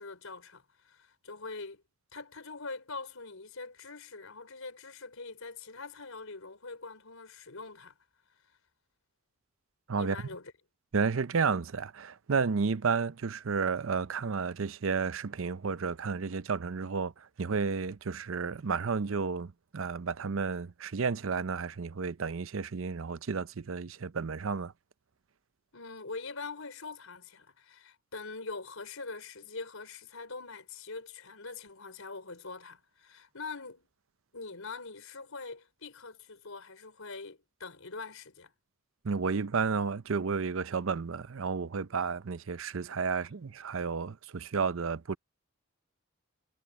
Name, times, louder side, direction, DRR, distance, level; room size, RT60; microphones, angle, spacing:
voice 1, 0.0-1.8 2.1-7.9 10.0-10.5 25.7-33.9 34.3-38.5, left 4 dB, 80° left, 4.2 m, -43 dB
voice 2, 10.9-24.7 39.0-45.2, right 5 dB, 70° right, 0.6 m, -32 dB
head